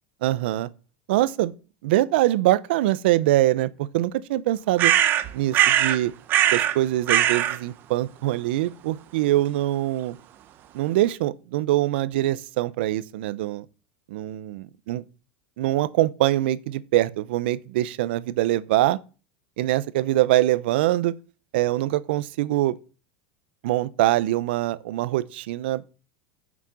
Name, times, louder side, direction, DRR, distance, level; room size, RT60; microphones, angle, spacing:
voice 1, 0.2-0.7 1.1-1.5 1.8-4.9 5.3-6.1 6.5-10.2 10.7-13.6 14.1-15.0 15.6-19.0 19.6-21.1 21.5-22.8 23.6-25.8, right 15 dB, 75° right, 0.7 m, -23 dB
sound 1, 4.8-6.0 6.3-6.8 7.1-7.6, right 12 dB, 35° right, 0.8 m, -20 dB
7.3 x 6.2 x 7.0 m
supercardioid pair, 150°, 6 cm